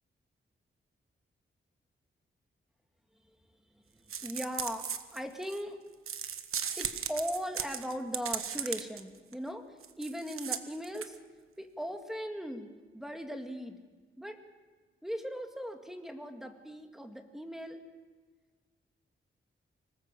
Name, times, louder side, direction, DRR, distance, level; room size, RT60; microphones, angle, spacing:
sound 1, 4.1-5.6 6.1-9.0 9.3-9.4 9.8-11.2, right 8 dB, 85° right, 1.2 m, -37 dB
voice 1, 4.2-5.8 6.8-11.2 11.6-12.7 12.9-13.8 14.2-14.4 15.0-17.8, equal, ahead, 4 dB, 2.0 m, -39 dB
25.5 x 18.5 x 7.5 m, 1.4 s
wide cardioid pair, 155°, 21 cm